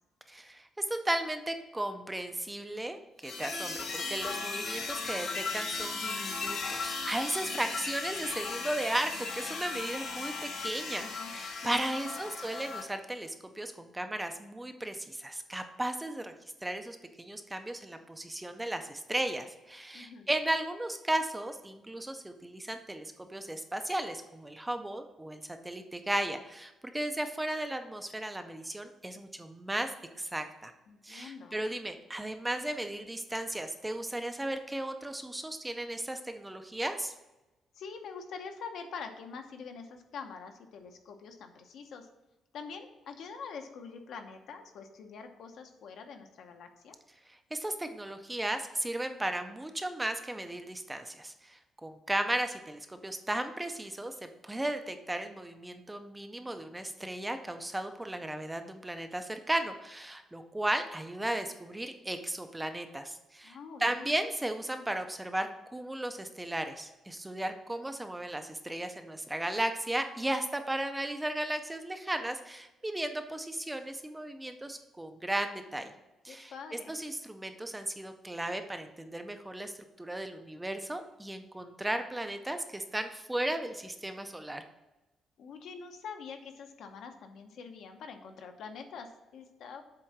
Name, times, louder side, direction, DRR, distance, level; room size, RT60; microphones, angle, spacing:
voice 1, 0.3-16.3 16.6-29.9 30.2-30.7 31.0-37.1 47.3-75.9 76.2-84.6, right 1 dB, 10° right, 7 dB, 0.4 m, -35 dB
sound 1, 3.2-12.9, left 4 dB, 50° left, 1.3 m, -37 dB
voice 2, 11.0-11.3 11.6-12.3 19.9-20.3 30.9-31.6 37.7-42.1 42.5-47.0 63.4-64.1 76.3-76.9 85.4-89.8, left 5 dB, 65° left, 5 dB, 0.9 m, -45 dB
7.7 x 3.7 x 5.8 m, 1.0 s
cardioid pair, 175°, 0 cm